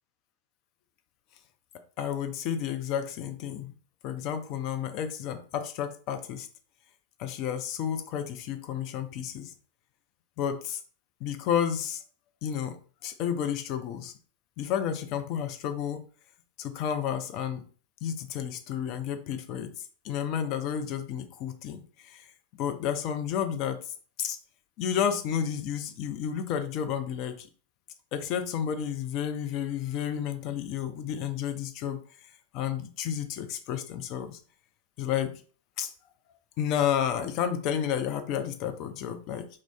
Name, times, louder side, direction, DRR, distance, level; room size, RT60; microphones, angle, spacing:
voice 1, 2.0-3.7 4.0-6.5 7.2-9.5 10.4-10.8 11.2-12.0 12.4-14.1 14.6-16.1 16.6-17.6 18.0-22.2 22.6-23.8 24.2-24.4 24.8-27.5 28.1-32.0 32.5-34.4 35.0-35.4 35.8-35.9 36.6-39.5, left 9 dB, 40° left, 7 dB, 0.4 m, -31 dB
2.4 x 2.0 x 3.9 m, 0.41 s
figure-of-eight pair, 90°, 0 cm